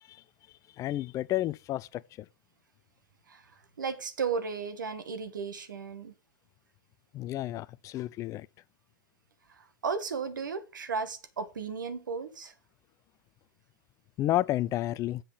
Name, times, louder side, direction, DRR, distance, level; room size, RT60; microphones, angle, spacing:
voice 1, 0.8-2.0 7.1-8.5 14.2-15.2, left 14 dB, 30° left, 0.5 m, -30 dB
voice 2, 3.3-6.1 9.5-12.5, right 5 dB, 85° right, 1.7 m, -35 dB
7.8 x 5.8 x 6.5 m
hypercardioid pair, 105°, 10 cm